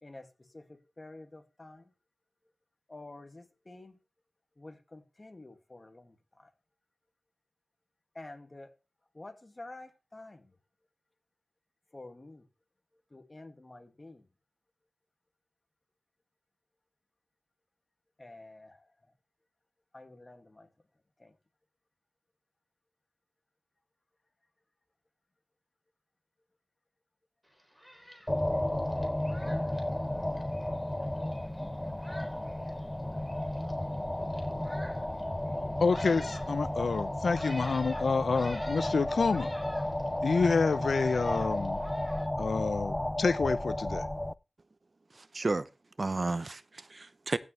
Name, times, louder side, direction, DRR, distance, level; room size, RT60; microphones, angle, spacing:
voice 1, 0.0-1.9 2.9-4.0 4.6-6.5 8.1-8.8 9.1-10.6 11.9-12.5 13.1-14.3 18.2-18.9 19.9-20.7 21.2-21.4, left 2 dB, 30° left, 2.2 m, -49 dB
Thunderstorm, 27.5-42.3, equal, 5° right, 3.9 m, -51 dB
sound 1, 28.3-44.3, left 1 dB, 15° left, 0.5 m, -33 dB
voice 2, 35.8-39.5 40.2-41.8 42.4-44.0, left 4 dB, 70° left, 0.6 m, -28 dB
voice 3, 45.1-45.7 46.0-47.4, right 3 dB, 45° right, 0.7 m, -32 dB
15.5 x 6.5 x 3.3 m
wide cardioid pair, 65°, 0 cm